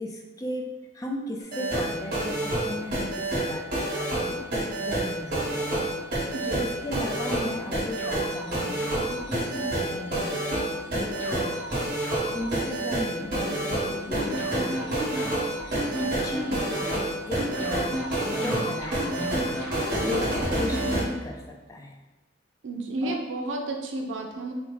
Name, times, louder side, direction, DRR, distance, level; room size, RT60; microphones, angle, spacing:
voice 1, 0.0-4.5 4.8-5.9 6.4-11.6 12.3-16.8 17.3-22.0 23.0-23.2, left 1 dB, 20° left, 3 dB, 0.4 m, -36 dB
sound 1, 1.4-21.0, right 1 dB, 50° right, 1.3 m, -28 dB
sound 2, 8.0-20.8, left 1 dB, 70° left, 1.1 m, -42 dB
voice 2, 22.6-24.5, right 2 dB, 85° right, 3 dB, 0.6 m, -32 dB
4.2 x 2.1 x 3.9 m, 1.2 s
head